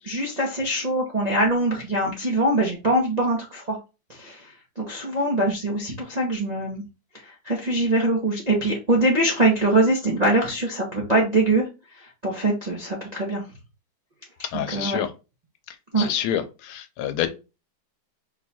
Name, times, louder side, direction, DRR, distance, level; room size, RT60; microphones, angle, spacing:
voice 1, 0.0-3.8 4.2-4.4 4.8-6.8 7.4-11.7 12.2-13.4 14.4-15.0 15.9-16.1, right 1 dB, 50° right, 0.5 m, -23 dB
voice 2, 14.5-15.1 16.0-17.3, left 10 dB, 85° left, 1.5 m, -27 dB
4.6 x 2.3 x 4.1 m
omnidirectional pair, 2.3 m